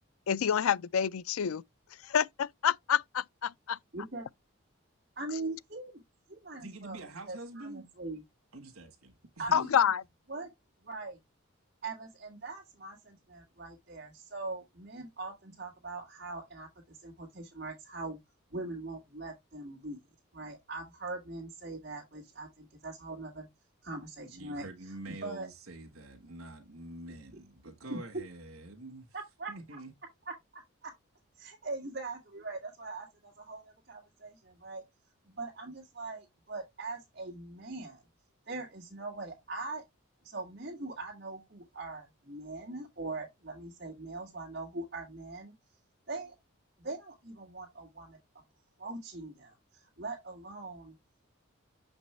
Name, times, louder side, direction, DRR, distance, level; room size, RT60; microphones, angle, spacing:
voice 1, 0.3-1.6 2.0-3.5 9.5-10.0, left 8 dB, 80° left, 0.4 m, -28 dB
voice 2, 3.9-4.2 5.2-5.9 6.3-7.0 7.3-8.2 9.4-9.8 10.3-10.5 10.8-11.2 11.8-18.2 18.5-20.0 20.3-23.5 23.8-24.7 25.2-25.5 27.9-28.0 29.1-29.5 30.3-30.9 31.4-34.8 35.3-38.0 38.5-39.8 40.2-45.5 46.1-46.4 46.8-48.2 48.8-50.9, right 3 dB, 50° right, 1.8 m, -41 dB
voice 3, 6.6-7.9 8.5-9.7 24.3-29.1 29.5-29.9, right 2 dB, 90° right, 1.6 m, -46 dB
7.0 x 5.2 x 3.2 m
head